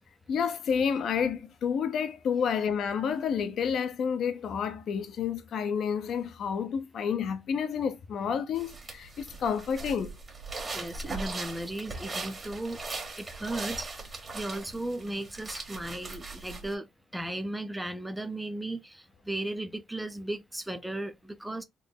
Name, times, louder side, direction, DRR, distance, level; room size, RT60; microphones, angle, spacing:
voice 1, 0.3-10.2, left 7 dB, 65° left, 0.7 m, -30 dB
sound 1, 8.6-16.7, right 3 dB, 30° right, 1.5 m, -39 dB
voice 2, 10.7-12.8 13.2-13.9 14.3-16.9 17.1-21.6, right 1 dB, 5° right, 0.6 m, -36 dB
3.8 x 2.0 x 3.9 m
cardioid pair, 90°, 0 cm